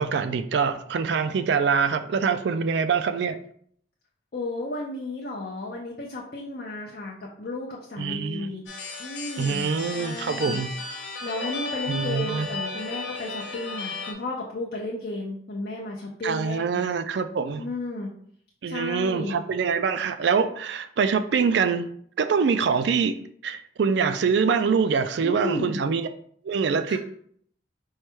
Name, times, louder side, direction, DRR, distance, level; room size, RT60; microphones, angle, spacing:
voice 1, 0.0-3.4 8.0-8.5 9.4-10.7 11.9-12.5 16.2-17.7 18.6-21.9 22.2-23.1 23.4-26.1 26.4-27.0, right 5 dB, 65° right, 0.3 m, -24 dB
voice 2, 4.3-8.6 9.0-10.6 11.2-17.1 17.6-18.1 18.7-19.4 25.2-25.8 26.9-27.0, left 2 dB, 50° left, 0.6 m, -33 dB
sound 1, 8.7-14.1, left 3 dB, 70° left, 1.0 m, -34 dB
4.6 x 2.2 x 4.4 m
head